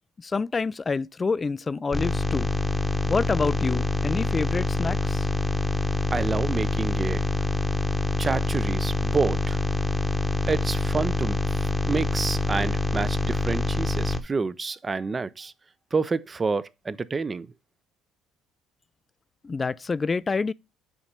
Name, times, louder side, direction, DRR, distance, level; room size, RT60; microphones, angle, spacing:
voice 1, 0.2-2.5 3.1-5.3 19.4-20.5, left 4 dB, 25° left, 0.3 m, -27 dB
sound 1, 1.9-14.2, left 1 dB, 5° left, 1.0 m, -26 dB
voice 2, 6.1-7.2 8.2-9.6 10.5-15.5 15.9-17.5, right 4 dB, 25° right, 0.6 m, -28 dB
7.1 x 4.3 x 5.1 m
supercardioid pair, 90°, 0 cm